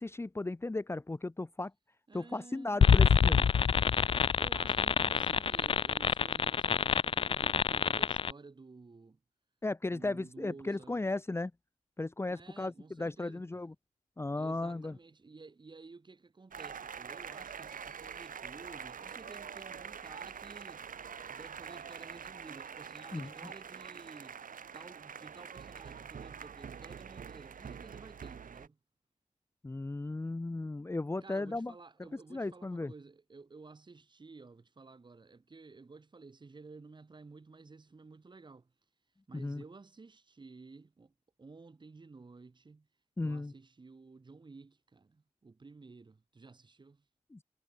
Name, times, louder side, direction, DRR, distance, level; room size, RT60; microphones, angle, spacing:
voice 1, 0.0-1.7 2.1-3.5 9.6-11.5 12.0-13.7 14.2-14.9 23.1-23.3 29.6-31.7 32.3-32.9 39.3-39.6 43.2-43.5 47.3-47.4, left 2 dB, 20° left, 1.2 m, -35 dB
voice 2, 2.1-2.8 4.4-9.2 9.9-11.0 12.3-13.5 14.4-20.9 21.3-24.4 24.7-28.8 31.2-38.7 39.3-41.1 41.4-42.9 43.2-47.0, right 4 dB, 35° right, 4.4 m, -53 dB
sound 1, 2.8-8.3, left 6 dB, 40° left, 0.3 m, -26 dB
sound 2, 16.5-28.7, right 7 dB, 75° right, 3.4 m, -45 dB
wide cardioid pair, 160°, 14 cm